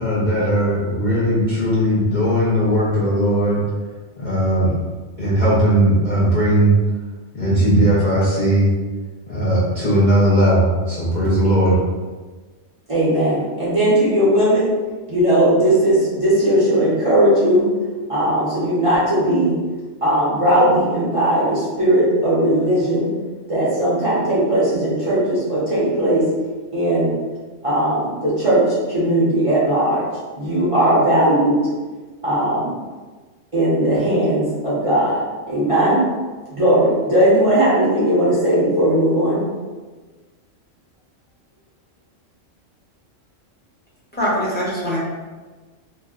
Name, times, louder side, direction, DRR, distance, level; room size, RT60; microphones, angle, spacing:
voice 1, 0.0-3.6 4.2-4.8 5.2-6.7 7.3-8.7 9.3-11.8, right 1 dB, 45° left, -9 dB, 0.7 m, -17 dB
voice 2, 12.9-14.6 15.1-17.7 18.1-19.5 20.0-23.1 23.5-26.3 26.7-27.1 27.6-30.0 30.4-31.6 32.2-32.7 33.5-35.2 35.5-36.0 36.5-39.4, right 1 dB, 30° right, -9 dB, 0.7 m, -18 dB
voice 3, 44.1-45.0, equal, 10° left, -8 dB, 0.7 m, -22 dB
2.8 x 2.1 x 3.6 m, 1.3 s
omnidirectional pair, 1.3 m